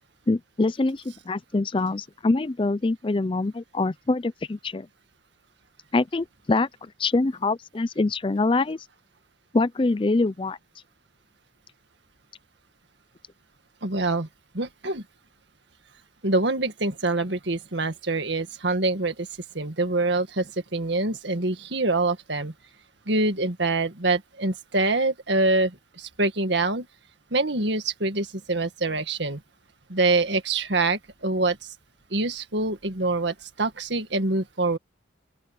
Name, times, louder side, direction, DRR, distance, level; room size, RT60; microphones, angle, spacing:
voice 1, 0.3-4.9 5.9-8.8 9.5-10.6, left 3 dB, 25° left, 0.4 m, -24 dB
voice 2, 13.8-14.3 14.5-15.0 16.2-19.3 19.5-22.5 23.1-26.9 27.3-29.4 29.9-31.6 32.1-34.8, right 2 dB, 65° right, 2.0 m, -25 dB
open air
head